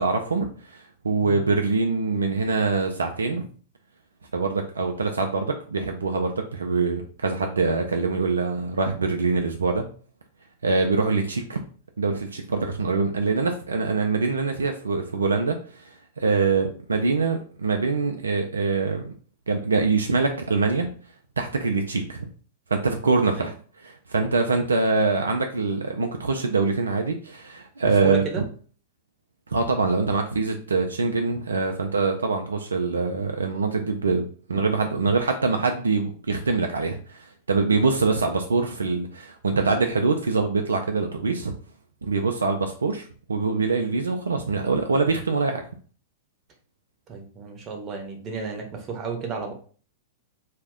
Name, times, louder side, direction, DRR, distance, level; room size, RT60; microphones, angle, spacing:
voice 1, 0.0-3.4 4.3-9.9 10.6-11.6 12.0-19.1 19.5-20.9 21.4-22.3 22.7-28.2 29.5-41.5 42.0-45.6, right 4 dB, 75° right, 4 dB, 0.3 m, -24 dB
voice 2, 27.8-28.4 47.1-49.5, right 4 dB, 30° right, 2 dB, 0.7 m, -33 dB
2.4 x 2.1 x 3.5 m, 0.42 s
figure-of-eight pair, 100°, 0 cm